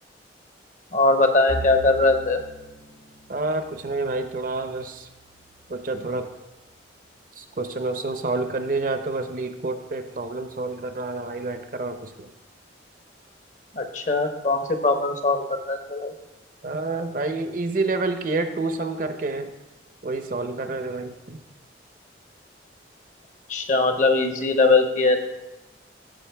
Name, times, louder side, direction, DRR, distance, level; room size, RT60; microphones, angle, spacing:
voice 1, 0.9-2.4 13.8-16.1 23.5-25.2, left 3 dB, 45° left, 6 dB, 0.8 m, -21 dB
Bowed string instrument, 1.5-5.9, right 2 dB, 70° left, 1.8 m, -40 dB
voice 2, 3.3-5.1 5.7-6.3 7.3-12.3 16.6-19.5 20.0-21.4, right 3 dB, 50° right, 8 dB, 0.6 m, -28 dB
14.0 x 5.3 x 3.4 m, 0.98 s
head